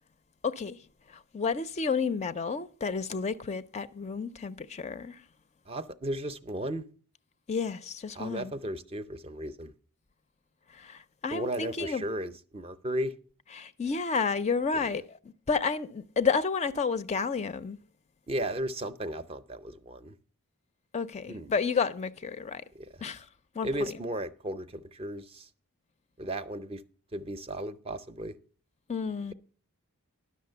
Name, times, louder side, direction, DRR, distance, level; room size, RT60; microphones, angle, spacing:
voice 1, 0.4-0.8 1.3-5.2 7.5-8.5 10.7-12.0 13.5-15.0 15.5-17.8 20.9-22.6 23.0-23.3 23.6-23.9 28.9-29.3, left 5 dB, 30° left, 0.4 m, -31 dB
voice 2, 5.7-6.9 8.2-9.7 11.3-13.1 14.7-14.9 18.3-20.2 21.3-21.5 22.7-23.0 23.6-25.5 26.2-26.8 27.1-28.4, right 1 dB, 25° right, 0.5 m, -35 dB
11.0 x 6.3 x 6.6 m
head